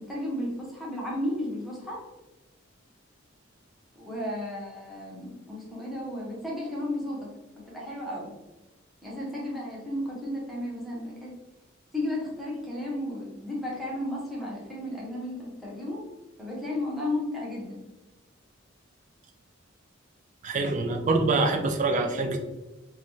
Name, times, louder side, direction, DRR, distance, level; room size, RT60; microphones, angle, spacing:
voice 1, 0.0-2.0 4.0-8.3 9.0-11.3 11.9-16.0 16.4-17.8, left 1 dB, ahead, -5 dB, 0.8 m, -34 dB
voice 2, 20.4-22.4, right 3 dB, 40° right, 3 dB, 0.4 m, -25 dB
3.2 x 2.2 x 2.6 m, 1.1 s
head